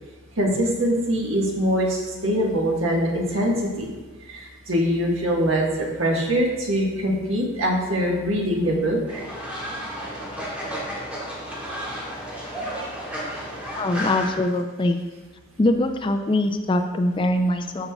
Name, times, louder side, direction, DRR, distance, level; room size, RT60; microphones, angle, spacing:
voice 1, 0.4-3.9 4.3-9.2, equal, 75° right, -2 dB, 1.4 m, -23 dB
Fowl, 9.1-14.3, equal, 5° right, 1.7 m, -32 dB
voice 2, 13.8-15.0 15.6-17.9, left 1 dB, 25° left, 6 dB, 0.4 m, -22 dB
13.0 x 5.3 x 2.3 m, 1.3 s
head